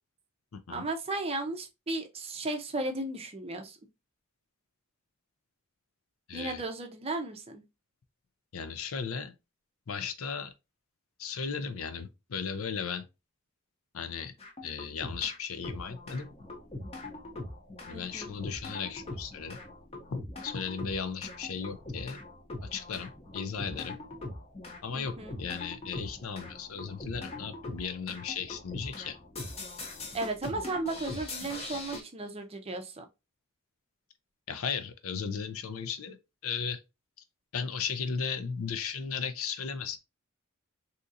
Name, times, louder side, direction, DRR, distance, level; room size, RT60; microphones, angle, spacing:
voice 1, 0.7-3.8 6.3-7.6 17.9-18.3 24.9-25.4 30.1-33.0, right 2 dB, 30° right, 0.5 m, -35 dB
voice 2, 6.3-6.6 8.5-9.3 9.9-10.5 11.2-13.0 13.9-14.3 14.6-16.3 17.9-19.6 20.1-22.2 22.6-24.0 24.8-29.2 34.5-36.2 36.4-36.8 37.5-40.0, left 6 dB, 80° left, 0.6 m, -36 dB
sound 1, 14.4-15.4 15.6-32.0, left 2 dB, 30° left, 0.7 m, -42 dB
3.7 x 2.8 x 2.6 m
head